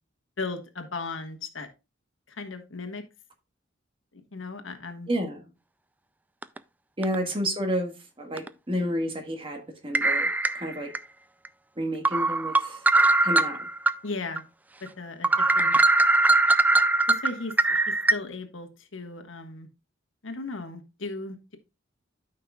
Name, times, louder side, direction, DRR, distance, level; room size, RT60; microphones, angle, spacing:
voice 1, 0.4-1.7 2.3-3.0 4.1-5.1 14.0-14.4 14.8-15.8 17.1-19.7 20.2-21.6, left 3 dB, 80° left, 1.4 m, -36 dB
voice 2, 5.1-5.4 7.0-11.0 11.8-12.9 13.2-13.7, equal, 30° right, 1.7 m, -30 dB
sound 1, 6.4-6.6 7.0-7.2 8.4-8.5 9.9-11.0 11.4-11.5 12.0-13.9 14.4-14.5 14.9-15.0 15.2-18.1, right 2 dB, 10° right, 0.3 m, -21 dB
13.0 x 5.7 x 2.3 m
head